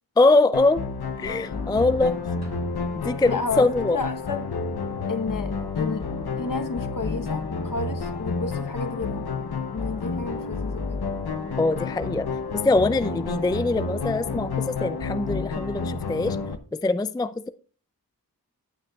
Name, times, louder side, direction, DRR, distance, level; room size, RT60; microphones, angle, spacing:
voice 1, 0.2-0.8 1.2-2.2 3.0-4.0 11.6-12.3 12.6-16.4 16.8-17.5, left 2 dB, 10° left, 13 dB, 0.3 m, -22 dB
sound 1, 0.5-16.6, left 4 dB, 90° left, 0.8 m, -30 dB
sound 2, 2.4-3.9, right 1 dB, 45° right, 2.3 m, -51 dB
voice 2, 3.3-4.5 5.1-6.0 6.4-9.2 9.7-11.0, left 4 dB, 60° left, 7 dB, 1.0 m, -31 dB
14.5 x 6.4 x 2.3 m, 0.37 s
wide cardioid pair, 50°, 37 cm